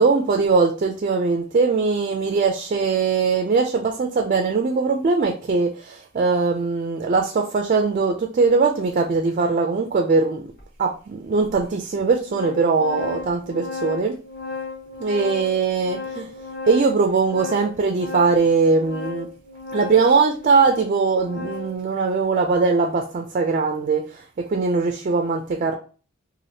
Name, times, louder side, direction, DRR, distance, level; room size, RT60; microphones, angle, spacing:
voice 1, 0.0-10.4 10.8-14.2 15.0-16.3 16.7-19.3 19.7-24.2 24.5-25.7, right 4 dB, 35° right, 3 dB, 0.3 m, -21 dB
Organ, 10.6-10.7 11.5-11.6 11.9-21.8, left 4 dB, 45° left, 1.0 m, -35 dB
3.3 x 2.5 x 2.6 m, 0.37 s
head